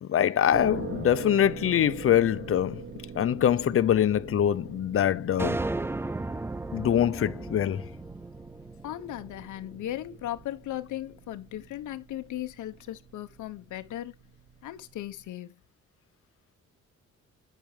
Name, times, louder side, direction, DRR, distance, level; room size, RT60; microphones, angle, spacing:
voice 1, 0.0-2.9 3.1-5.7 6.7-7.8, left 10 dB, 45° left, 0.7 m, -24 dB
sound 1, 0.5-15.3, right 6 dB, 35° right, 2.3 m, -44 dB
sound 2, 5.4-9.8, right 2 dB, 10° right, 0.4 m, -35 dB
voice 2, 8.8-14.1 14.6-15.6, left 13 dB, 75° left, 1.1 m, -37 dB
8.8 x 6.0 x 3.4 m
cardioid pair, 90°, 30 cm